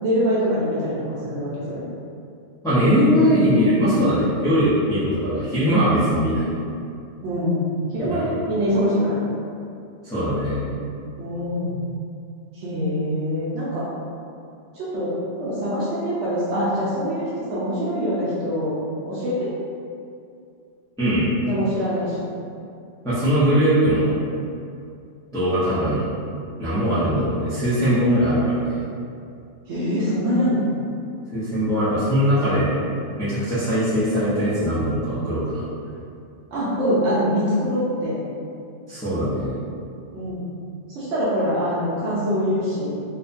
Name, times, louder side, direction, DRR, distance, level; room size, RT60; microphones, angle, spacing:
voice 1, 0.0-1.9 7.2-9.2 10.7-11.8 12.5-13.8 14.7-18.8 19.0-19.5 21.4-22.3 29.7-30.7 36.5-38.2 40.1-40.5 40.9-42.9, equal, 90° right, -10 dB, 1.0 m, -24 dB
voice 2, 2.6-6.5 8.0-8.2 10.0-10.6 21.0-21.3 23.0-24.1 25.3-26.0 26.6-28.8 31.3-32.7 33.2-35.6 38.9-39.5, equal, 5° left, -15 dB, 0.5 m, -20 dB
2.7 x 2.2 x 2.5 m, 2.5 s
omnidirectional pair, 1.2 m